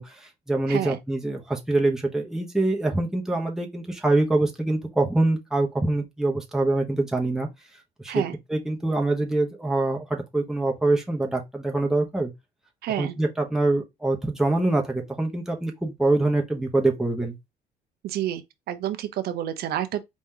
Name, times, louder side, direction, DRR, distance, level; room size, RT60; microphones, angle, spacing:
voice 1, 0.0-7.5 8.0-8.2 8.5-12.3 13.0-17.3, right 2 dB, 5° right, 1.0 m, -24 dB
voice 2, 0.7-1.0 8.1-8.4 12.8-13.1 18.0-18.4 18.7-20.0, right 11 dB, 70° right, 0.8 m, -29 dB
4.2 x 3.0 x 3.8 m
cardioid pair, 110°, 17 cm